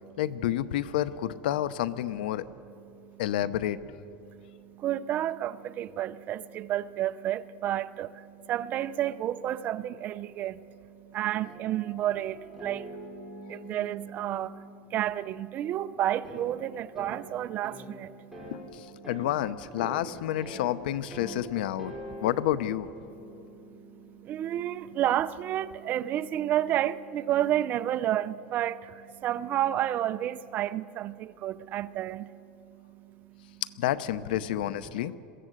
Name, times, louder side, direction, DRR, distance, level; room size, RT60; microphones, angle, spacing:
voice 1, 0.2-2.4 3.2-3.8 18.5-21.9 22.2-22.9 33.8-35.2, left 12 dB, 85° left, 16 dB, 0.8 m, -29 dB
voice 2, 2.9-3.2 4.2-18.5 22.1-22.2 23.2-33.6, right 12 dB, 35° right, 15 dB, 0.6 m, -31 dB
sound 1, 11.4-15.4 16.2-16.4 17.0-17.2 17.6-17.9 18.3-18.6 19.0-19.3 19.8-20.0 20.4-20.7 21.1-21.4 21.8-24.2, equal, 5° right, 4.5 m, -44 dB
22.5 x 15.0 x 7.9 m, 2.7 s
supercardioid pair, 145°, 5 cm